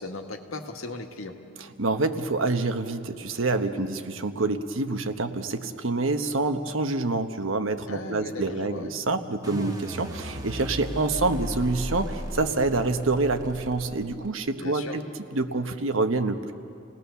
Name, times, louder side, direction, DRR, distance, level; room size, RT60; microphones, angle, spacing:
voice 1, 0.0-1.4 7.9-8.9 14.6-15.0, left 2 dB, 85° left, 4 dB, 1.8 m, -37 dB
voice 2, 1.6-15.1 15.3-16.5, right 3 dB, 75° right, 8 dB, 1.1 m, -27 dB
sound 1, 9.4-14.5, equal, 15° right, 1.7 m, -35 dB
29.0 x 18.5 x 7.0 m, 2.6 s
head